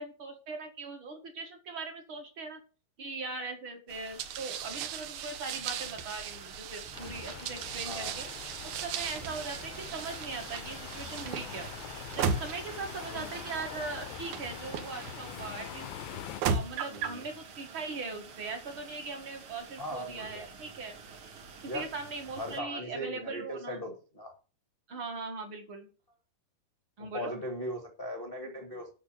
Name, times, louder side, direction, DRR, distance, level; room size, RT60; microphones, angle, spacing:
voice 1, 0.0-2.6 3.0-8.3 8.6-11.7 12.1-15.9 16.4-20.9 21.7-23.8 24.9-25.9 27.0-27.4, right 3 dB, 50° right, 4 dB, 1.5 m, -40 dB
sound 1, 3.9-22.6, right 4 dB, 90° right, 1.1 m, -48 dB
sound 2, 4.2-15.5 16.1-17.2, right 6 dB, 70° right, 2.4 m, -37 dB
sound 3, 6.9-16.4, left 14 dB, 90° left, 3.0 m, -45 dB
voice 2, 7.8-8.2 13.1-13.4 16.9-17.2 19.8-20.5 21.7-21.9 22.3-24.3 27.0-28.9, equal, 70° left, 1 dB, 0.5 m, -39 dB
9.3 x 6.6 x 8.5 m, 0.36 s
omnidirectional pair, 5.2 m